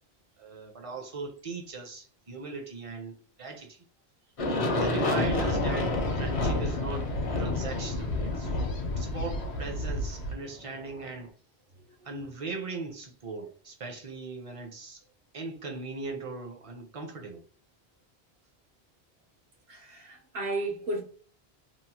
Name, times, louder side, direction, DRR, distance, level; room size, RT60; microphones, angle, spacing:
voice 1, 0.4-3.9 4.6-7.1 7.4-8.6 9.0-11.3 12.0-15.0 15.3-17.4, right 4 dB, 40° right, 0.6 m, -39 dB
Aircraft, 4.4-11.1, left 2 dB, 50° left, 0.4 m, -31 dB
sound 1, 5.2-10.3, left 2 dB, 85° left, 1.0 m, -32 dB
voice 2, 19.7-21.0, right 2 dB, 70° right, 1.1 m, -33 dB
2.8 x 2.0 x 2.8 m
omnidirectional pair, 1.1 m